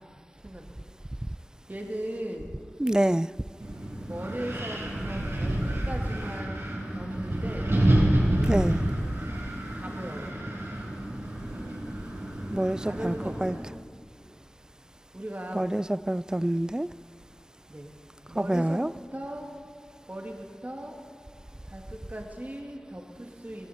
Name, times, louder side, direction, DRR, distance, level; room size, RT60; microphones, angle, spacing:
voice 1, 1.7-2.6 4.1-7.7 9.7-10.5 12.8-13.7 15.1-15.7 17.7-17.9 18.3-19.5 20.1-21.0 21.7-23.7, right 1 dB, 35° right, 1 dB, 2.1 m, -38 dB
voice 2, 2.8-3.3 8.5-8.8 12.5-13.1 13.4-13.5 15.5-16.9 18.4-18.9, right 1 dB, 15° right, 18 dB, 0.3 m, -26 dB
Wind, 3.6-13.6, right 1 dB, 70° right, 4.4 m, -29 dB
18.0 x 18.0 x 4.3 m, 2.2 s
wide cardioid pair, 40°, 5 cm